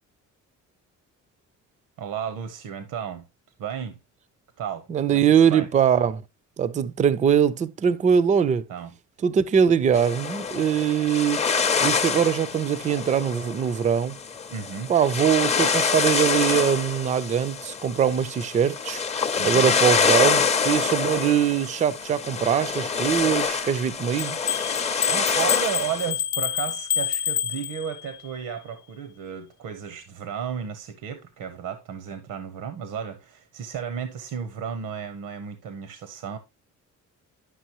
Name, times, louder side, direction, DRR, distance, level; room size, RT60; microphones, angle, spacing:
voice 1, 2.0-3.2 3.6-4.0 4.6-5.7 8.7-8.9 14.5-14.9 19.4-19.7 25.1-36.4, right 8 dB, 80° right, 1.0 m, -33 dB
voice 2, 4.9-6.2 6.6-8.6 9.2-11.4 11.8-14.1 14.9-19.0 19.4-24.4, right 8 dB, 25° right, 0.4 m, -22 dB
sound 1, 9.9-26.1, left 5 dB, 20° left, 0.6 m, -26 dB
sound 2, 24.2-28.2, left 10 dB, 65° left, 0.5 m, -28 dB
11.5 x 6.0 x 2.9 m
cardioid pair, 175°, 31 cm